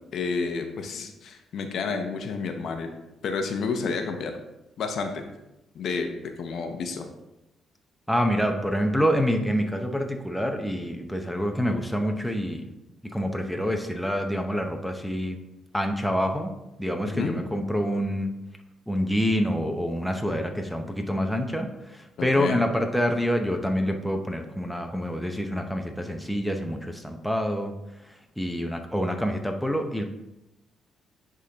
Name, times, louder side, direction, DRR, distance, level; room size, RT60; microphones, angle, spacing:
voice 1, 0.1-2.9 3.2-4.4 4.8-5.2 5.7-7.1 17.1-17.4 22.2-22.6, left 4 dB, 65° left, 6 dB, 0.7 m, -30 dB
voice 2, 8.1-12.7 13.1-15.4 15.7-16.5 16.8-18.3 18.9-27.7 28.0-30.0, equal, ahead, 4 dB, 0.7 m, -27 dB
9.9 x 3.7 x 2.9 m, 0.95 s
cardioid pair, 90°, 0 cm